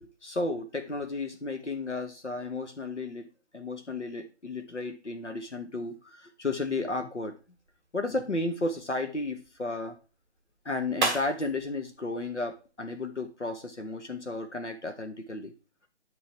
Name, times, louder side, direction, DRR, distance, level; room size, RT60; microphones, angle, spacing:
voice 1, 0.0-3.3 3.5-7.3 7.9-10.0 10.6-15.5, left 2 dB, 85° left, 6 dB, 1.3 m, -33 dB
sound 1, 7.4-13.3, right 3 dB, ahead, 0.8 m, -38 dB
11.0 x 3.8 x 4.6 m, 0.33 s
figure-of-eight pair, 150°, 34 cm